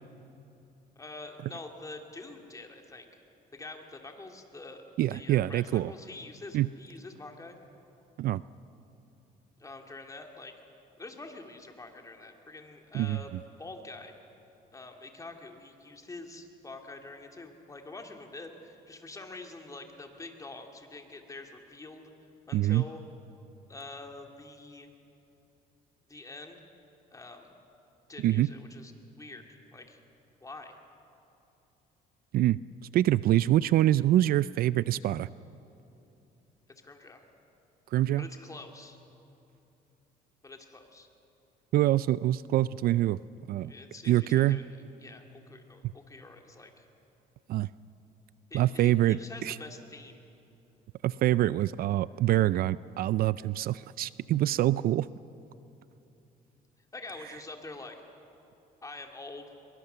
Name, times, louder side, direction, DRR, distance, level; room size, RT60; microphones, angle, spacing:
voice 1, 1.0-3.1 3.5-7.6 9.6-10.5 11.0-13.3 13.6-14.1 14.7-22.0 22.5-23.0 23.7-24.9 26.1-26.6 27.1-27.6 28.1-28.9 29.2-29.5 29.7-30.0 30.4-30.8 36.8-37.2 38.2-39.0 40.4-41.1 43.7-44.7 45.0-46.9 48.5-50.2 56.9-58.0 58.8-59.5, left 2 dB, 20° left, 3 dB, 2.5 m, -46 dB
voice 2, 5.0-5.9 6.5-6.7 8.2-8.4 12.9-13.2 22.5-22.8 28.2-28.5 32.3-32.6 32.9-35.3 37.9-38.3 41.7-43.2 43.5-43.7 44.1-44.6 47.5-47.7 48.5-49.6 51.0-55.1, right 14 dB, 60° right, 18 dB, 0.4 m, -25 dB
23.5 x 22.0 x 6.8 m, 2.8 s
cardioid pair, 110°, 17 cm